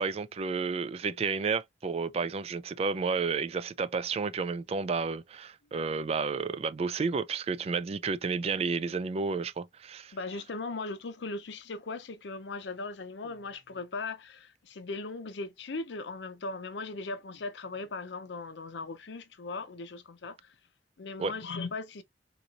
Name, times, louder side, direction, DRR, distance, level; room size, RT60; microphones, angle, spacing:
voice 1, 0.0-10.1 21.2-21.3, right 4 dB, 35° right, 0.3 m, -31 dB
voice 2, 10.1-20.5 21.0-22.0, left 3 dB, 90° left, 0.6 m, -38 dB
3.8 x 3.0 x 2.4 m
head